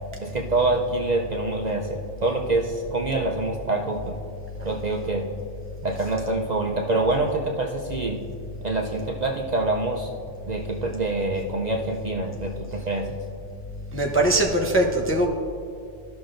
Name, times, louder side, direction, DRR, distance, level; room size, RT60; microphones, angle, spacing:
voice 1, 0.2-4.2 4.6-5.3 5.8-8.2 8.6-10.1 10.5-13.1, right 2 dB, 45° right, 0 dB, 0.6 m, -26 dB
voice 2, 13.9-15.3, right 1 dB, 15° left, -1 dB, 0.5 m, -21 dB
14.5 x 5.9 x 2.5 m, 2.4 s
omnidirectional pair, 1.2 m